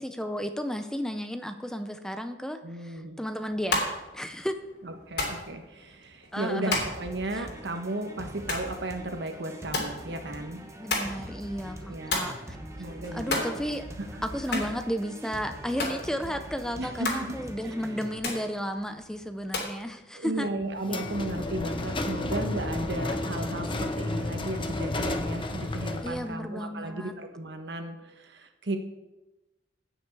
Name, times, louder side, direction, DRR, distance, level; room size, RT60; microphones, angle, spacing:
voice 1, 0.0-4.5 6.3-6.8 7.4-7.5 10.8-12.7 13.1-13.8 14.2-20.5 20.9-21.0 26.0-27.1, equal, 5° left, 8 dB, 0.5 m, -33 dB
voice 2, 2.6-3.2 4.8-10.6 11.8-12.2 12.8-13.4 14.1-14.6 16.8-17.3 17.6-17.7 20.1-28.8, right 1 dB, 65° right, 5 dB, 1.2 m, -35 dB
sound 1, 3.5-19.8, left 2 dB, 60° left, 3.1 m, -36 dB
sound 2, 6.8-18.2, right 1 dB, 15° right, 1.0 m, -43 dB
sound 3, 20.8-26.3, left 2 dB, 30° left, 0.8 m, -32 dB
16.0 x 6.3 x 4.7 m, 1.0 s
head